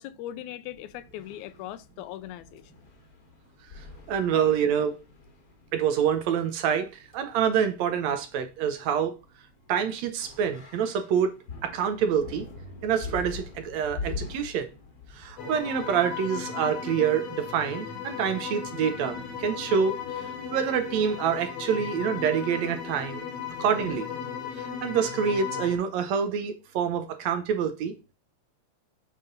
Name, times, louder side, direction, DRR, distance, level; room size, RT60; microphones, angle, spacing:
voice 1, 0.0-2.6 23.5-23.6, left 12 dB, 80° left, 1.9 m, -39 dB
sound 1, 0.7-16.4, left 4 dB, 45° left, 1.3 m, -44 dB
voice 2, 4.1-5.0 5.7-9.2 9.7-11.3 11.6-12.5 12.8-14.7 15.1-20.3 20.5-23.3 23.6-24.1 24.8-27.9, right 7 dB, 75° right, 2.0 m, -26 dB
sound 2, 15.4-25.8, left 7 dB, 65° left, 2.1 m, -36 dB
8.9 x 3.7 x 3.9 m
omnidirectional pair, 3.3 m